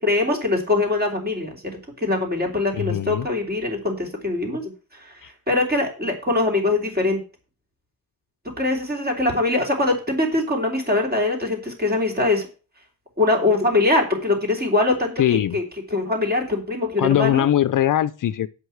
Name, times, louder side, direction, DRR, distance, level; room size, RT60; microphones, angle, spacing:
voice 1, 0.0-1.6 2.0-7.2 8.6-12.5 13.2-15.1 15.5-15.6 15.9-17.5, left 2 dB, 25° right, 3.5 m, -22 dB
voice 2, 2.7-3.3 5.2-5.3 15.2-15.6 17.0-18.5, left 11 dB, 55° left, 0.5 m, -21 dB
8.0 x 5.6 x 7.9 m
cardioid pair, 120°, 38 cm